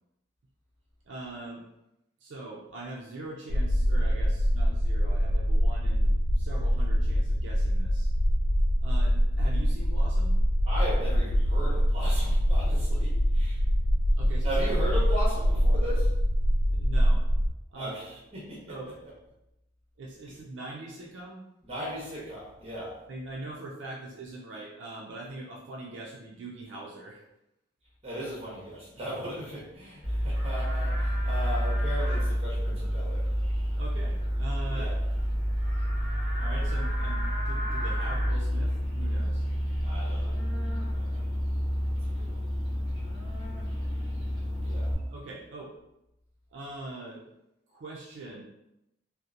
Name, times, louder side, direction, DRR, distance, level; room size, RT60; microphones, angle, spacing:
voice 1, 1.1-1.6 2.2-8.1 8.8-10.4 14.2-14.6 16.7-17.2 17.7-18.2 18.7-18.9 20.0-21.4 23.1-27.2 33.8-34.9 35.3-35.4 36.4-39.5 45.0-45.7 46.5-47.3 47.7-48.4, right 2 dB, 70° right, -3 dB, 0.4 m, -42 dB
sound 1, 3.5-17.5, equal, 75° left, 0.3 m, -24 dB
voice 2, 10.7-13.6 14.4-16.1 17.8-18.8 21.6-23.0 28.0-33.3 34.7-34.9 39.8-40.4 40.9-41.3 42.0-42.4 44.6-44.9, right 1 dB, 30° right, -5 dB, 0.9 m, -37 dB
Livestock farm animals working animals, 30.0-44.9, equal, 20° left, 1.2 m, -29 dB
2.7 x 2.1 x 2.4 m, 0.87 s
head